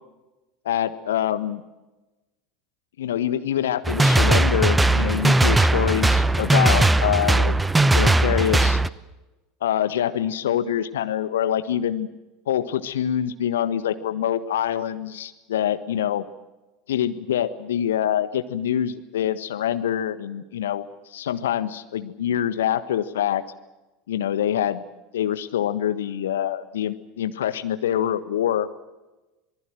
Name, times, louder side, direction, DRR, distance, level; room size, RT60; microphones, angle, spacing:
voice 1, 0.6-1.6 3.0-7.6 7.9-8.8 9.6-12.1 12.5-16.2 16.9-20.9 21.1-23.4 24.1-24.8 25.1-28.7, left 10 dB, 65° left, 12 dB, 1.4 m, -25 dB
sound 1, 3.8-8.9, right 2 dB, 10° right, 0.8 m, -18 dB
26.5 x 19.5 x 7.7 m, 1.1 s
figure-of-eight pair, 75°, 0 cm